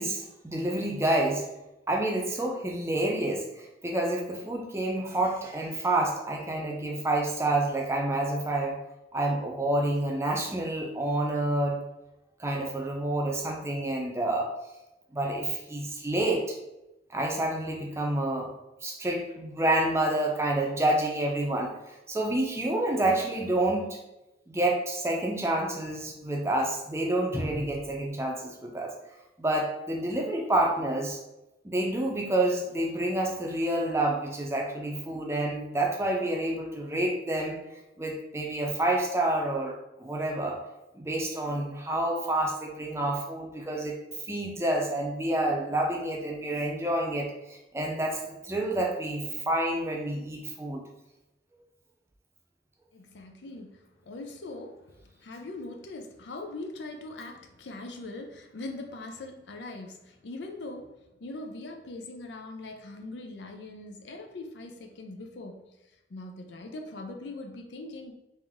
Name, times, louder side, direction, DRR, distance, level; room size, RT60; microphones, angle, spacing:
voice 1, 0.0-1.4 1.9-8.8 9.1-11.8 12.4-14.5 15.1-16.6 17.1-18.5 18.8-21.7 22.1-24.0 24.5-28.9 29.4-31.2 31.6-37.6 38.0-40.6 40.9-44.0 44.3-50.8, right 1 dB, 15° right, 0 dB, 0.5 m, -28 dB
voice 2, 52.9-65.7 66.1-68.1, left 2 dB, 85° left, 4 dB, 0.5 m, -41 dB
3.5 x 2.6 x 3.5 m, 0.94 s
head